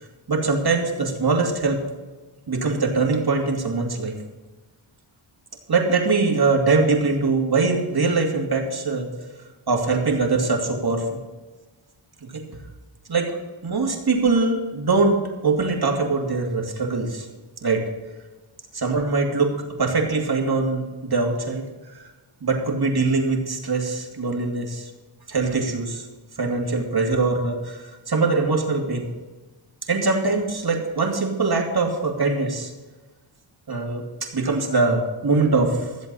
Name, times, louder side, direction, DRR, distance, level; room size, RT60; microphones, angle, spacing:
voice 1, 0.3-1.8 2.5-4.2 5.7-9.1 9.7-11.2 12.2-12.4 13.1-13.3 13.6-17.3 17.6-17.8 18.7-21.7 22.4-24.9 25.3-26.1 26.4-29.1 29.9-32.7 33.7-35.9, right 3 dB, 50° right, 1 dB, 2.8 m, -22 dB
15.0 x 7.8 x 5.6 m, 1.3 s
cardioid pair, 60°, 49 cm